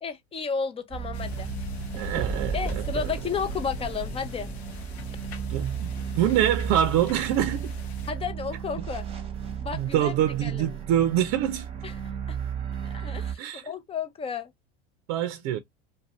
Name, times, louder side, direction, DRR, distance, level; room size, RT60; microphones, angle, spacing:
voice 1, 0.0-1.5 2.5-4.5 8.1-9.1 9.6-10.2 10.4-10.7 11.8-11.9 12.3-12.4 12.8-14.5, left 6 dB, 20° left, 0.6 m, -32 dB
sound 1, 0.9-13.4, right 7 dB, 20° right, 0.9 m, -34 dB
sound 2, 1.1-8.1, left 5 dB, 80° left, 0.7 m, -41 dB
voice 2, 1.9-3.1 5.5-7.7 9.7-11.7 13.4-13.6 15.1-15.6, right 11 dB, 55° right, 0.6 m, -25 dB
2.6 x 2.3 x 3.0 m
hypercardioid pair, 95°, 32 cm